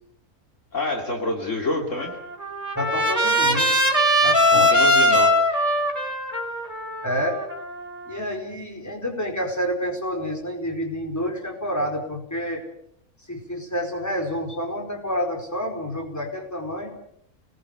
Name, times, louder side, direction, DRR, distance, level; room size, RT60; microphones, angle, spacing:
voice 1, 0.7-2.2 4.5-5.3, left 2 dB, 55° left, 2 dB, 3.2 m, -27 dB
Trumpet, 2.0-8.1, equal, 25° right, 4.7 m, -21 dB
voice 2, 2.7-3.7 4.2-4.7 7.0-7.4 8.0-12.6 13.3-17.0, equal, 10° left, 2 dB, 4.8 m, -28 dB
30.0 x 20.0 x 6.9 m, 0.69 s
omnidirectional pair, 1.5 m